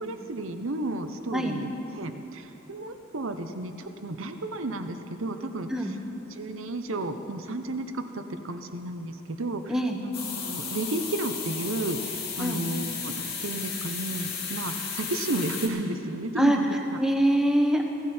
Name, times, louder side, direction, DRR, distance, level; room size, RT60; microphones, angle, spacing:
voice 1, 0.0-6.0 6.3-17.0, right 2 dB, 70° right, 8 dB, 0.9 m, -33 dB
sound 1, 10.1-15.7, left 6 dB, 45° left, 2.4 m, -34 dB
voice 2, 17.0-17.8, right 1 dB, ahead, 2 dB, 1.1 m, -23 dB
17.0 x 14.5 x 4.4 m, 2.9 s
head